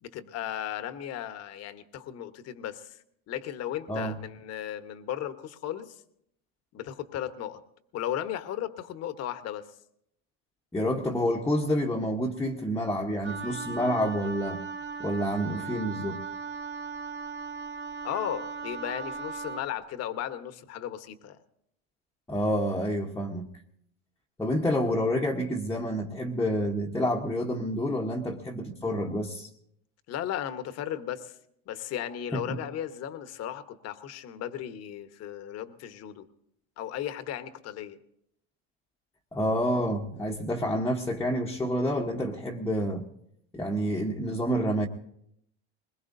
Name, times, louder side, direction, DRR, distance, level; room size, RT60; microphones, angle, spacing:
voice 1, 0.0-3.0 3.3-6.0 6.7-7.6 7.9-9.7 18.0-21.4 30.1-31.3 31.7-36.3 36.8-38.0, left 11 dB, 50° left, 10 dB, 1.1 m, -35 dB
voice 2, 10.7-14.6 15.0-16.2 22.3-23.5 24.4-29.5 32.3-32.6 39.3-43.0 43.5-44.9, equal, 10° left, -1 dB, 1.0 m, -28 dB
Wind instrument woodwind instrument, 13.2-19.7, right 5 dB, 40° right, 1.3 m, -37 dB
21.0 x 20.5 x 2.7 m, 0.74 s
supercardioid pair, 115°, 34 cm